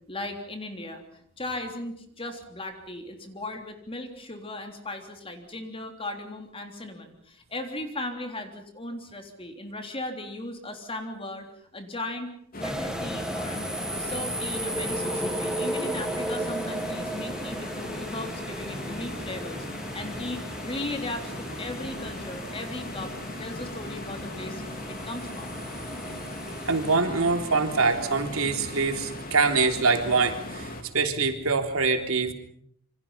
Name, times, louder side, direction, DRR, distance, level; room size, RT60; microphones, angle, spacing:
voice 1, 0.1-11.5 11.7-13.7 13.9-19.7 19.9-23.1 23.4-25.6, left 2 dB, 25° left, 5 dB, 3.5 m, -37 dB
sound 1, 12.5-30.8, left 1 dB, 45° left, 3.7 m, -38 dB
sound 2, 12.6-27.0, right 1 dB, 5° right, 1.3 m, -35 dB
voice 2, 26.5-32.3, right 4 dB, 85° right, 5 dB, 3.5 m, -24 dB
28.0 x 25.0 x 5.8 m, 0.67 s
head